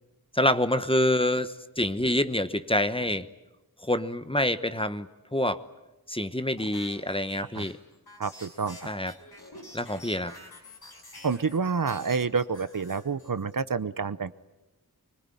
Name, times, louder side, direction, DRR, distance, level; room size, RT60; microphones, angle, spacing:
voice 1, 0.3-3.3 3.8-5.6 6.1-7.8 8.8-9.1 9.7-10.3, left 1 dB, 15° left, 12 dB, 1.1 m, -26 dB
sound 1, 6.6-11.6 11.9-13.5, left 1 dB, 85° left, 6.7 m, -48 dB
voice 2, 8.2-8.8 11.2-14.3, right 5 dB, 60° right, 14 dB, 0.9 m, -28 dB
24.0 x 21.5 x 9.8 m, 1.0 s
wide cardioid pair, 55°, 37 cm